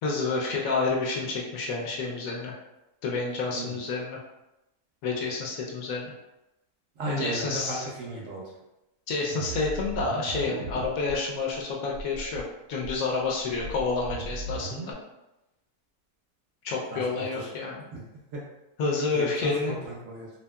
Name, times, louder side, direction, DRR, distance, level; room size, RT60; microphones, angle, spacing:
voice 1, 0.0-2.5 3.0-4.2 5.0-6.1 7.1-7.8 9.1-12.4 12.7-14.9 16.6-17.8 18.8-19.8, left 4 dB, 70° left, -2 dB, 1.0 m, -29 dB
voice 2, 3.4-3.8 7.0-8.5 16.9-17.5 17.9-18.0 18.3-18.4 18.8-20.3, right 1 dB, 65° right, -4 dB, 0.8 m, -35 dB
sound 1, 9.3-11.2 11.5-11.6 11.9-12.4 12.8-14.9, right 2 dB, 85° right, 1.1 m, -37 dB
2.7 x 2.7 x 2.2 m, 0.94 s
omnidirectional pair, 1.6 m